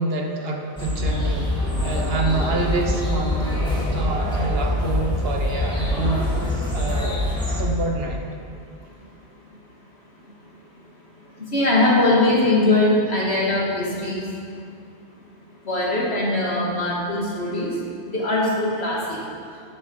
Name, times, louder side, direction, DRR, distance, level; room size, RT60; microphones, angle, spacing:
voice 1, 0.0-3.6 3.9-6.3 6.7-7.3 7.6-8.2, right 3 dB, 60° right, 2 dB, 1.4 m, -27 dB
sound 1, 0.8-7.6, left 1 dB, 5° left, 2.5 m, -24 dB
voice 2, 11.5-14.3 15.6-17.7 18.0-19.2, left 2 dB, 65° left, -5 dB, 2.6 m, -21 dB
13.0 x 7.3 x 5.6 m, 2.4 s
omnidirectional pair, 1.1 m